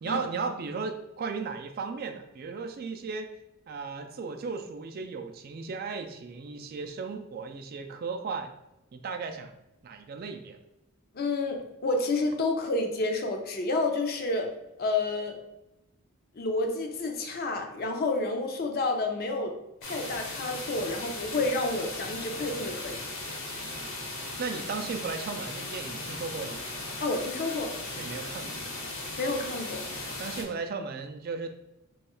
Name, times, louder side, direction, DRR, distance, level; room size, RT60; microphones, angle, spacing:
voice 1, 0.0-3.3 3.7-8.5 8.9-9.5 9.8-10.6 23.6-24.1 24.4-26.6 28.0-28.6 30.0-31.5, right 4 dB, 45° right, 6 dB, 0.3 m, -36 dB
voice 2, 11.1-14.5 14.8-15.4 16.4-19.5 19.8-23.0 27.0-27.7 29.2-29.8, left 2 dB, 45° left, 4 dB, 0.5 m, -29 dB
sound 1, 19.8-30.4, left 2 dB, 65° left, 1.0 m, -37 dB
3.0 x 2.4 x 4.2 m, 0.91 s
head